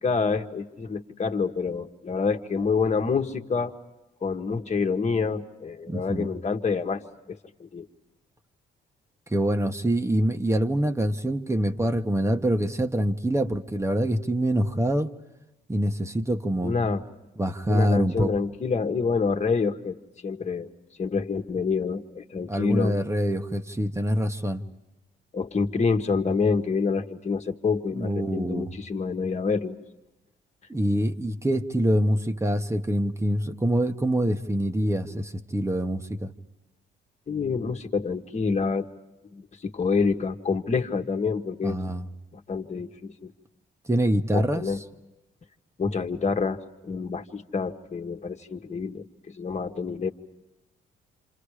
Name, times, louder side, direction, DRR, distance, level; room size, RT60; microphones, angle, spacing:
voice 1, 0.0-3.8 4.2-7.9 16.6-17.0 17.7-20.0 20.2-20.7 21.0-23.0 25.3-29.8 37.3-38.9 39.3-41.8 42.3-43.3 44.3-44.8 45.8-50.1, left 5 dB, 35° left, 5 dB, 1.7 m, -27 dB
voice 2, 5.9-6.3 9.3-15.1 15.7-16.7 17.4-18.3 22.5-24.6 27.9-28.7 30.7-36.3 41.6-42.0 43.9-44.6, right 1 dB, 15° right, 7 dB, 1.4 m, -25 dB
28.0 x 27.5 x 5.0 m, 1.0 s
cardioid pair, 90°, 20 cm